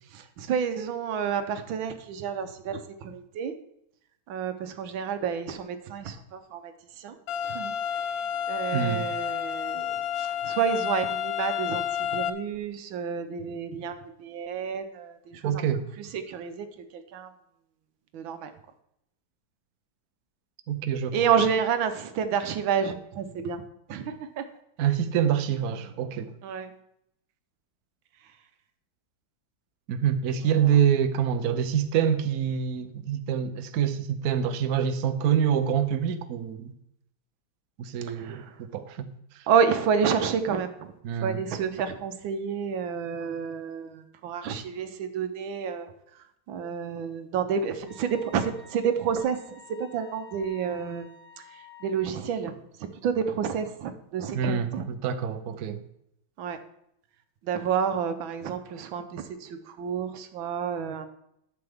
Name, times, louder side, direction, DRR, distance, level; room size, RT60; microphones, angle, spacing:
voice 1, 0.1-3.5 4.3-7.2 7.5-7.7 8.5-15.6 16.0-16.7 16.9-17.3 18.1-18.5 21.1-23.6 23.9-24.5 26.4-26.7 30.6-30.8 38.1-38.5 39.5-40.9 41.2-45.9 46.5-49.4 49.7-51.1 51.8-52.5 52.8-54.8 56.4-56.6 57.4-61.1, right 7 dB, 90° right, 9 dB, 1.6 m, -29 dB
sound 1, 7.3-12.3, left 9 dB, 80° left, 1.4 m, -30 dB
voice 2, 8.7-9.1 15.4-15.8 20.7-21.3 24.8-26.3 29.9-36.7 37.8-38.4 38.7-39.1 41.0-41.4 54.3-55.8, right 8 dB, 60° right, 8 dB, 1.1 m, -26 dB
Wind instrument woodwind instrument, 47.9-52.1, left 5 dB, 45° left, 3.7 m, -50 dB
11.5 x 7.8 x 3.5 m, 0.77 s
omnidirectional pair, 2.1 m